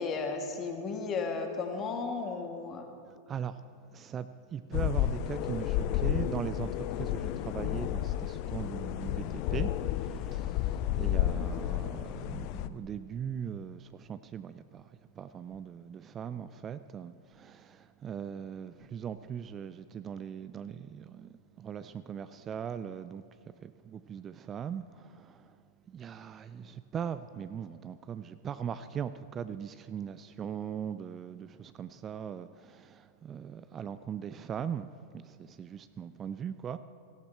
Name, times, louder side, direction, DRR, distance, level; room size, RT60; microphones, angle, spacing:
voice 1, 0.0-2.9, left 4 dB, 30° left, 1.6 m, -34 dB
voice 2, 3.0-3.6 3.9-25.5 25.9-36.8, right 8 dB, 25° right, 0.3 m, -40 dB
sound 1, 4.7-12.7, left 12 dB, 45° left, 0.4 m, -31 dB
17.0 x 14.5 x 3.3 m
figure-of-eight pair, 90°, 0 cm